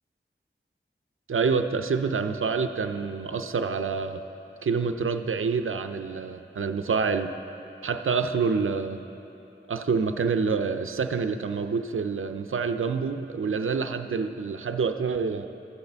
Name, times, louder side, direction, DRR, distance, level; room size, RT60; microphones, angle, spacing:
voice 1, 1.3-4.2 4.6-7.3 7.8-9.0 9.7-15.5, right 5 dB, 80° right, 8 dB, 0.4 m, -27 dB
14.0 x 8.0 x 3.4 m, 2.9 s
wide cardioid pair, 45°, 21 cm